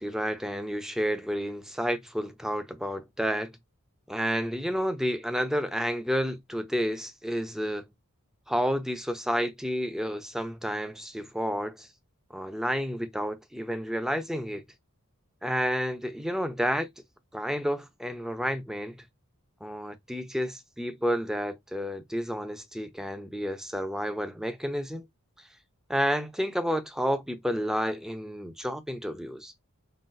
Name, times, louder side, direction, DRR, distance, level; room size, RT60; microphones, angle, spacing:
voice 1, 0.0-3.5 4.1-7.9 8.5-11.9 12.3-14.6 15.4-16.9 17.3-19.0 19.6-25.1 25.9-29.5, equal, ahead, 0.4 m, -30 dB
3.9 x 2.1 x 2.5 m
head